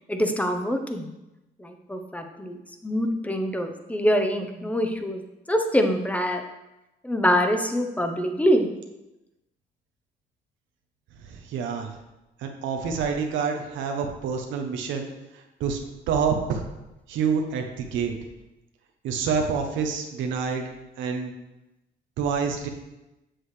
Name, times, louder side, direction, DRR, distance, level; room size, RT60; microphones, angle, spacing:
voice 1, 0.1-1.1 1.6-2.6 2.8-5.2 5.5-6.4 7.0-8.7, equal, 5° left, 5 dB, 0.9 m, -24 dB
voice 2, 11.3-11.9 12.4-15.1 15.6-15.8 16.1-16.6 17.1-18.1 19.0-20.6 21.0-21.3 22.2-22.7, right 6 dB, 85° right, 3 dB, 0.9 m, -27 dB
7.8 x 6.3 x 3.3 m, 0.98 s
cardioid pair, 90°, 19 cm